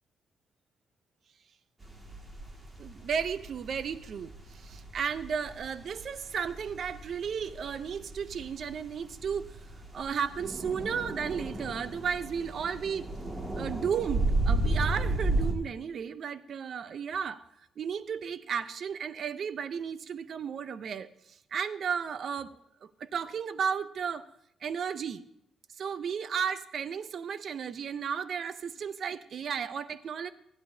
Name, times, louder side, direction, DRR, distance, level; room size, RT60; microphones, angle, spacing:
sound 1, 1.8-15.5, right 2 dB, 25° right, 2.1 m, -34 dB
voice 1, 2.8-9.7 9.9-13.1 13.6-17.4 17.8-24.3 24.6-25.2 25.8-30.3, right 7 dB, 55° right, 14 dB, 0.6 m, -34 dB
15.0 x 10.0 x 2.8 m, 0.78 s
cardioid pair, 90°, 0 cm